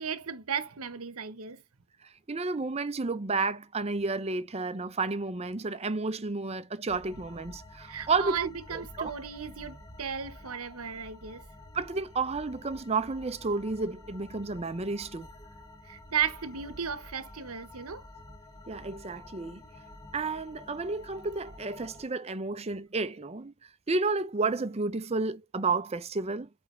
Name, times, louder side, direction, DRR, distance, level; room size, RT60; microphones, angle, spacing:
voice 1, 0.0-1.6 7.8-11.4 15.9-18.0, right 7 dB, 90° right, 1.0 m, -35 dB
voice 2, 2.0-9.1 11.7-15.3 18.7-19.6 20.1-23.5 23.9-26.5, right 3 dB, 30° right, 0.6 m, -31 dB
sound 1, 6.9-22.0, left 2 dB, 15° left, 1.0 m, -49 dB
8.4 x 3.4 x 3.3 m
head